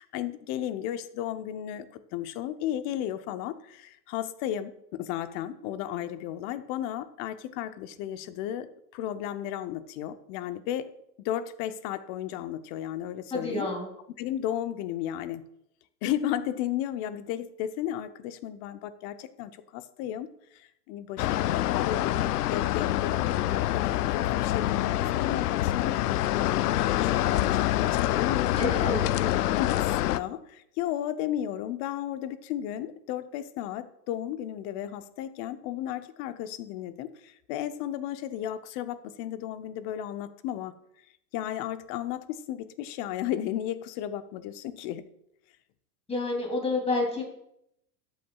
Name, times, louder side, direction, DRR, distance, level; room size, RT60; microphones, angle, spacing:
voice 1, 0.0-10.9 11.2-13.7 14.2-15.5 16.0-28.6 29.2-40.7 41.3-45.0, left 11 dB, 35° left, 12 dB, 0.7 m, -34 dB
voice 2, 13.3-13.9 28.6-29.0 46.1-47.2, left 2 dB, 10° left, 0 dB, 3.0 m, -28 dB
sound 1, 21.2-30.2, left 14 dB, 70° left, 0.5 m, -26 dB
12.5 x 8.9 x 2.4 m, 0.78 s
hypercardioid pair, 105°, 48 cm